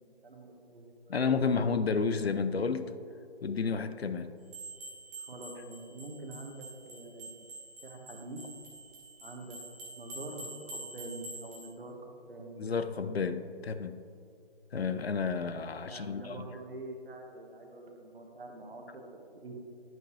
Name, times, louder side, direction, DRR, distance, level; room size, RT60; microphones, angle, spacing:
voice 1, 0.0-1.2 5.2-7.4 7.8-8.4 9.2-9.6 9.9-12.6 15.8-19.5, right 2 dB, 65° right, 2 dB, 1.4 m, -45 dB
voice 2, 1.1-2.9 3.4-4.3 12.6-14.0 14.7-16.5, left 5 dB, 80° left, 11 dB, 0.6 m, -31 dB
sound 1, 4.5-11.7, right 2 dB, 15° right, 0.8 m, -47 dB
10.5 x 5.7 x 3.1 m, 2.4 s
figure-of-eight pair, 145°, 31 cm